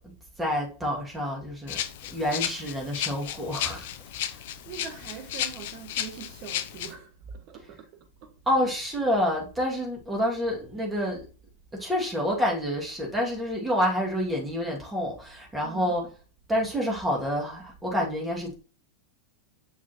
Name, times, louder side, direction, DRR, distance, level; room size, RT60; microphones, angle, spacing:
voice 1, 0.4-1.8 2.1-3.9 4.3-4.4 8.5-11.2 11.8-16.1 16.5-18.5, equal, 10° right, 2.3 m, -28 dB
Rattle (instrument), 1.7-6.9, left 11 dB, 50° left, 0.6 m, -34 dB
voice 2, 4.6-8.3 15.6-16.0, right 7 dB, 40° right, 1.5 m, -43 dB
7.5 x 6.0 x 3.0 m
figure-of-eight pair, 90°, 0 cm